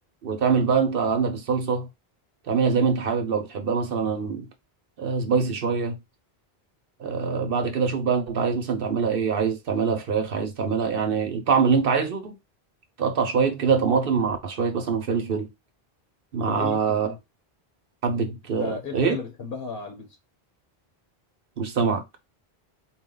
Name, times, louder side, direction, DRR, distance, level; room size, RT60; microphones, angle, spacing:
voice 1, 0.2-1.9 2.5-4.5 5.0-6.0 7.0-12.4 13.0-15.5 16.3-17.1 18.0-19.2 21.6-22.0, right 5 dB, 65° right, 1.0 m, -24 dB
voice 2, 16.5-16.8 17.0-17.2 18.6-20.2, left 4 dB, 65° left, 1.2 m, -34 dB
4.3 x 2.3 x 3.8 m
omnidirectional pair, 1.0 m